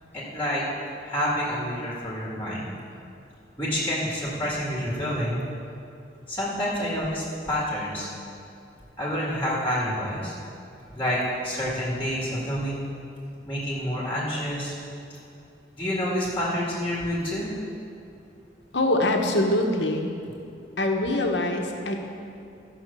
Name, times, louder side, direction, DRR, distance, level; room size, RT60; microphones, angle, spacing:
voice 1, 0.1-0.6 1.0-2.7 3.6-5.5 6.3-8.1 9.0-10.3 10.9-12.8 13.5-14.7 15.8-17.5, equal, 10° left, -6 dB, 2.0 m, -28 dB
voice 2, 18.7-20.1 20.8-21.9, left 1 dB, 80° left, 2 dB, 1.2 m, -24 dB
14.0 x 5.9 x 6.9 m, 2.6 s
head